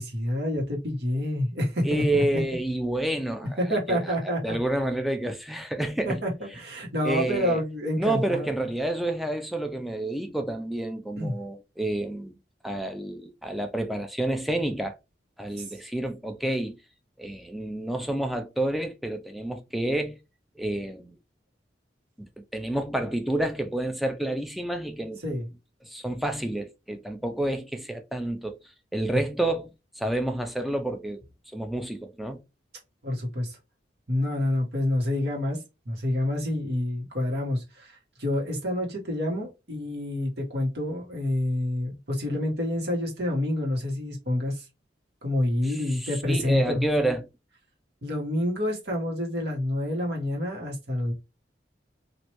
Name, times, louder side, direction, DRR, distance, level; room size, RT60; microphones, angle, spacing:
voice 1, 0.0-2.0 3.6-4.6 6.1-8.5 11.2-11.4 15.6-15.7 25.2-25.5 29.1-29.2 33.0-33.6 34.1-35.6 35.8-44.6 45.2-46.8 48.0-51.1, left 1 dB, 60° right, 1.3 m, -28 dB
voice 2, 1.8-6.2 7.0-7.6 8.0-12.4 12.6-15.0 15.4-16.8 17.2-20.2 20.6-21.1 22.2-25.2 25.8-28.6 28.9-29.7 30.0-31.2 31.5-32.4 45.6-47.3, right 1 dB, ahead, 0.4 m, -29 dB
3.0 x 2.5 x 3.0 m
head